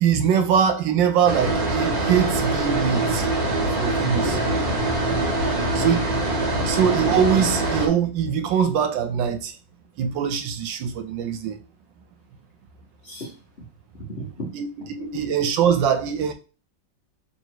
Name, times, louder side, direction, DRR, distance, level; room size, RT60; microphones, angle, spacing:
voice 1, 0.0-3.3 3.8-4.4 5.7-6.0 6.7-9.5 10.0-11.6 14.5-16.3, right 8 dB, 85° right, 1.4 m, -22 dB
sound 1, 1.3-7.9, right 2 dB, 60° right, 1.7 m, -23 dB
voice 2, 4.2-4.7 5.3-5.9 6.6-6.7 13.0-13.7 13.9-14.5 15.0-15.2, equal, 45° left, 0.9 m, -35 dB
3.1 x 3.0 x 4.5 m
omnidirectional pair, 2.0 m